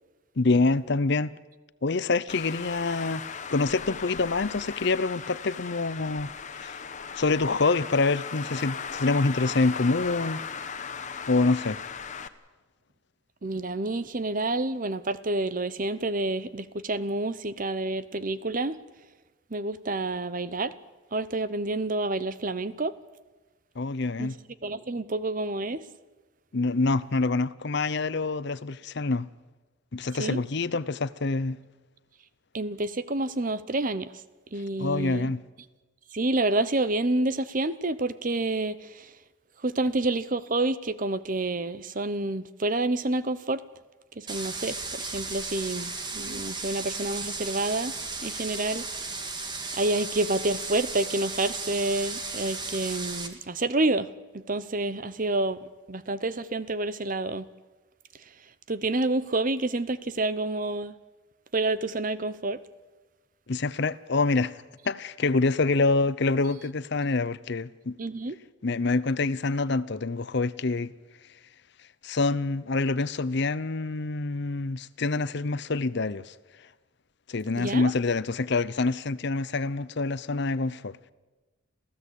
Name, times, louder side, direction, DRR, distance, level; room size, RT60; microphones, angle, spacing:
voice 1, 0.4-1.4 1.8-3.2 3.5-6.8 7.2-10.4 11.3-11.8 23.8-24.4 26.5-29.3 29.9-31.6 34.8-35.4 63.5-68.0 68.6-70.9 72.0-76.3 77.3-81.0, left 3 dB, 55° left, 0.7 m, -26 dB
Traffic noise roadway noise, 2.3-12.3, left 6 dB, 35° left, 1.0 m, -37 dB
voice 2, 13.4-18.8 19.5-20.7 21.1-22.9 24.2-24.3 24.6-25.9 30.2-30.4 32.5-34.1 34.5-35.3 36.1-39.1 39.6-43.6 44.2-47.9 48.2-48.9 49.7-54.1 54.3-55.6 55.9-57.5 58.7-60.9 61.5-62.6 68.0-68.4 77.6-77.9, right 2 dB, 40° right, 0.8 m, -28 dB
sound 1, 44.3-53.3, right 3 dB, 20° right, 1.9 m, -35 dB
27.0 x 15.5 x 8.3 m
head